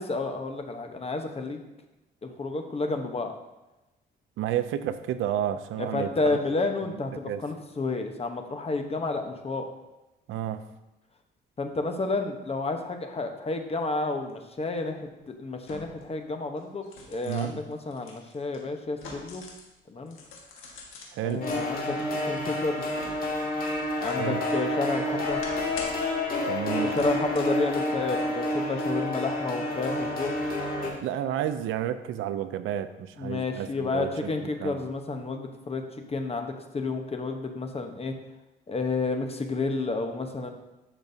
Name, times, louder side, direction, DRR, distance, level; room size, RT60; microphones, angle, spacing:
voice 1, 0.0-1.7 2.2-3.3 5.8-9.7 11.6-19.4 19.9-20.2 21.2-22.8 24.0-25.5 26.7-30.4 33.2-35.8 36.1-38.1 38.7-40.5, left 3 dB, 30° left, 5 dB, 1.0 m, -31 dB
voice 2, 4.4-6.4 7.3-7.4 10.3-10.6 17.3-17.5 21.1-21.6 24.2-24.4 26.5-26.9 31.0-34.3 34.6-34.8, right 11 dB, 85° right, 11 dB, 0.5 m, -31 dB
sound 1, 14.3-14.4 15.6-16.1 16.6-19.7 20.1-21.6 22.1-24.3 24.7-26.2 26.9-27.6 28.0-28.2, left 3 dB, 85° left, 1.6 m, -44 dB
sound 2, 21.4-30.9, left 1 dB, 45° left, 2.2 m, -29 dB
10.5 x 6.0 x 2.8 m, 1.0 s
cardioid pair, 90°, 20 cm